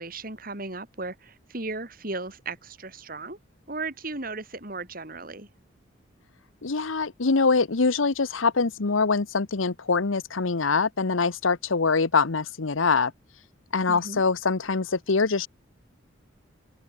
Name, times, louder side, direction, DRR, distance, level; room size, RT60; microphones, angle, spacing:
voice 1, 0.0-3.4 3.7-5.5 13.9-14.2, right 3 dB, 45° right, 3.8 m, -36 dB
voice 2, 6.6-13.1 13.7-15.5, left 4 dB, 90° left, 1.0 m, -24 dB
open air
head